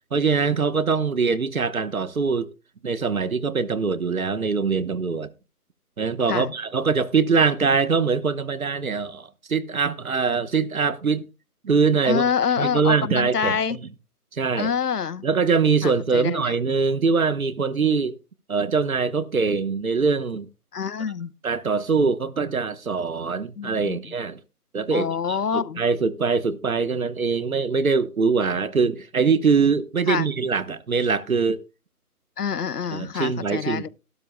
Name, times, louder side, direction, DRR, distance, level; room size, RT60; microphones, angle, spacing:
voice 1, 0.1-2.5 2.8-5.3 6.0-11.2 11.6-12.2 12.6-13.8 14.3-14.7 15.2-18.2 18.5-20.5 21.4-24.4 24.7-31.6 32.9-33.9, right 5 dB, 60° right, 1.2 m, -23 dB
voice 2, 12.0-13.8 14.6-15.3 15.8-16.5 20.7-21.3 23.6-24.1 24.9-25.8 28.5-28.7 30.1-30.3 32.4-33.9, left 7 dB, 80° left, 1.0 m, -26 dB
15.5 x 12.5 x 2.2 m
figure-of-eight pair, 170°, 46 cm